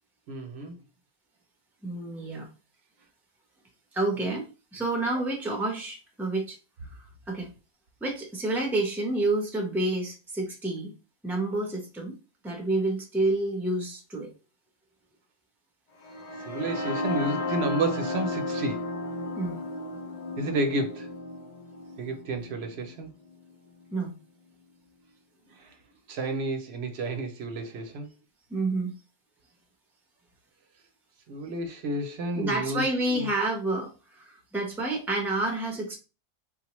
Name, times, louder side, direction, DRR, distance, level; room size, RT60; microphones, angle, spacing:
voice 1, 0.3-0.8 16.5-18.9 20.4-21.1 22.0-23.1 25.5-25.7 26.1-28.1 31.3-33.3, right 2 dB, 70° right, 0.8 m, -31 dB
voice 2, 1.8-2.5 3.9-4.4 4.7-6.6 7.3-7.5 8.0-10.9 11.2-12.1 12.4-14.3 19.4-19.6 23.9-24.1 28.5-28.9 32.4-36.0, right 2 dB, ahead, 0.6 m, -29 dB
sound 1, 16.0-23.9, left 2 dB, 50° left, 0.5 m, -34 dB
3.8 x 2.1 x 2.9 m
omnidirectional pair, 1.1 m